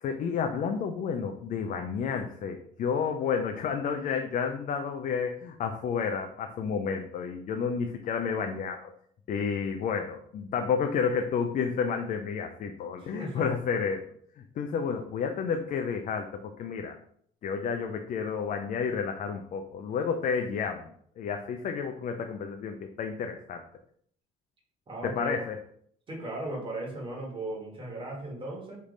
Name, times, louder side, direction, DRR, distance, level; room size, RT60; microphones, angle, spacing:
voice 1, 0.0-8.9 9.3-14.0 14.6-16.9 17.4-23.6 25.0-25.6, left 6 dB, 50° left, 5 dB, 0.4 m, -31 dB
voice 2, 13.0-13.5 24.9-25.3 26.1-28.8, right 1 dB, 30° right, -2 dB, 1.7 m, -37 dB
3.3 x 3.2 x 3.8 m, 0.63 s
cardioid pair, 110°, 17 cm